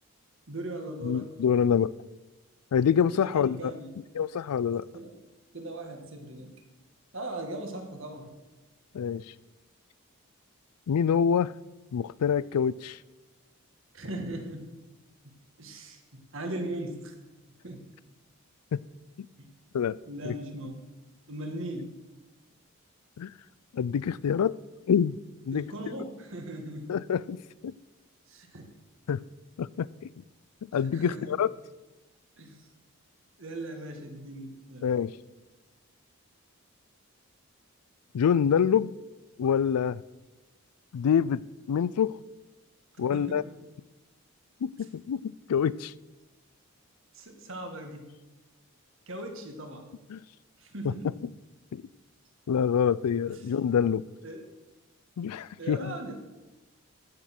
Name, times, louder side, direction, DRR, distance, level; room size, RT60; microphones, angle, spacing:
voice 1, 0.5-1.4 3.1-3.9 4.9-5.1 5.5-6.5 7.1-8.4 13.9-14.7 15.2-15.3 15.6-17.1 17.6-17.9 19.4-19.5 20.1-20.8 21.3-22.0 25.5-27.0 28.3-28.7 30.9-31.3 32.4-32.7 33.4-34.9 43.0-43.5 47.1-48.1 49.1-49.9 50.6-51.1 53.3-53.4 54.2-54.4 55.6-56.3, right 1 dB, 60° right, 4 dB, 1.7 m, -39 dB
voice 2, 1.0-1.9 2.7-3.7 4.1-4.9 8.9-9.3 10.9-11.5 11.9-13.0 18.7-18.8 19.2-19.3 19.7-20.0 20.2-20.4 23.2-23.3 23.7-24.6 24.9-25.2 25.5-25.7 26.9-27.7 29.1-29.2 29.6-30.1 30.7-31.5 34.8-35.1 38.1-38.9 39.4-40.0 40.9-41.4 41.7-42.2 43.0-43.4 44.6-45.9 50.1-50.2 50.8-50.9 51.7-51.8 52.5-54.1 55.2-56.0, left 7 dB, 90° left, 21 dB, 0.4 m, -26 dB
15.5 x 6.6 x 5.9 m, 1.1 s
head